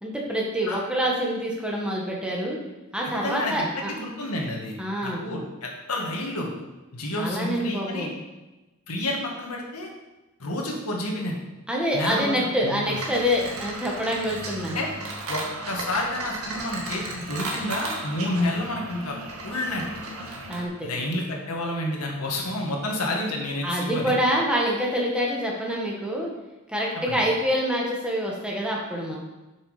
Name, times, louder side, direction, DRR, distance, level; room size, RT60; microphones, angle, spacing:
voice 1, 0.0-2.6 2.9-3.9 4.8-5.2 7.1-8.1 11.7-14.7 20.5-20.9 23.6-26.3 26.7-29.2, equal, 5° right, -2 dB, 1.6 m, -26 dB
voice 2, 3.2-6.5 6.9-8.1 8.9-9.9 10.4-11.3 11.9-12.8 14.7-14.9 15.3-19.8 20.8-24.1 27.1-27.2, left 1 dB, 85° left, 0 dB, 1.9 m, -30 dB
sound 1, 12.8-20.7, right 2 dB, 80° right, 1.8 m, -35 dB
7.8 x 6.5 x 5.0 m, 1.1 s
head